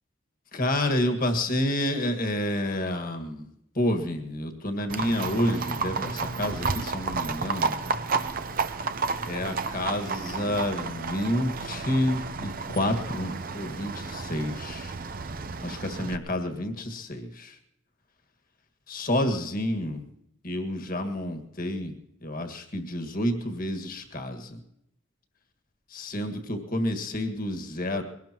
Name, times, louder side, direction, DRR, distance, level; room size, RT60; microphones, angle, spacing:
voice 1, 0.5-3.5 3.8-7.8 9.3-15.0 15.6-17.6 18.9-20.1 20.4-21.9 22.2-24.6 25.9-28.0, left 1 dB, 45° left, 5 dB, 1.8 m, -29 dB
Livestock farm animals working animals, 4.9-16.2, right 4 dB, 45° right, 0.7 m, -32 dB
22.5 x 18.5 x 3.0 m, 0.79 s
head